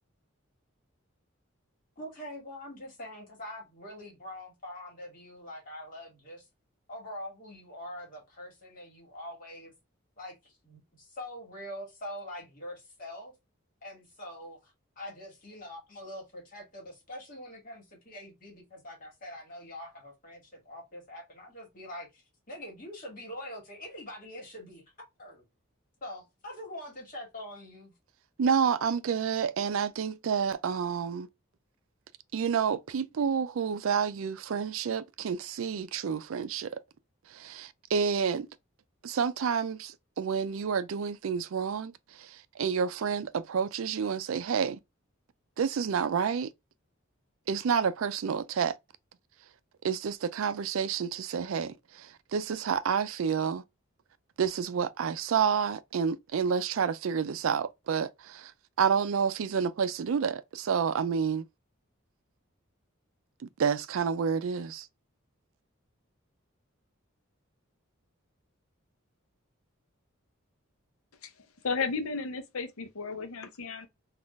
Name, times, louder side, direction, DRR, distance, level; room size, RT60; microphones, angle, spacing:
voice 1, 2.0-6.4 6.9-9.7 10.2-13.3 13.8-24.8 25.2-25.4 26.0-27.9, left 1 dB, 40° left, 1.7 m, -44 dB
voice 2, 28.4-31.3 32.3-36.7 37.3-38.5 39.0-41.9 42.2-44.8 45.6-46.5 47.5-48.7 49.8-53.6 54.4-58.5 58.8-61.4 63.6-64.9, right 6 dB, 75° right, 0.4 m, -29 dB
voice 3, 71.6-73.9, left 4 dB, 85° left, 0.7 m, -33 dB
3.7 x 2.4 x 2.3 m
head